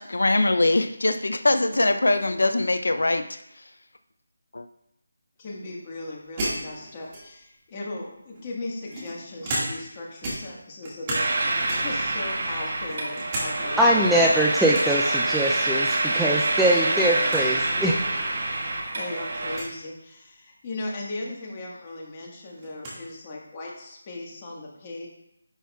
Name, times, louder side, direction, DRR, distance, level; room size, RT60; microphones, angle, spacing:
voice 1, 0.0-3.2 4.5-4.6, left 2 dB, 80° left, 8 dB, 0.5 m, -22 dB
voice 2, 5.4-15.4 16.8-17.4 17.8-18.3 18.9-25.1, left 2 dB, 25° left, -3 dB, 1.5 m, -37 dB
sound 1, 6.4-7.5 8.4-10.0 10.2-11.4 11.7-12.1 12.5-13.5 13.8-13.9 14.7-15.0 16.4-16.8 17.0-17.1 17.3-17.5 18.3-18.4 19.5-19.7 21.4-21.5 21.9-23.0, right 1 dB, 25° right, 1.9 m, -33 dB
sound 2, 11.1-19.6, right 2 dB, 50° right, 1.2 m, -26 dB
voice 3, 13.8-17.9, right 1 dB, ahead, -3 dB, 0.3 m, -22 dB
9.9 x 5.8 x 2.3 m, 0.81 s
figure-of-eight pair, 165°, 0 cm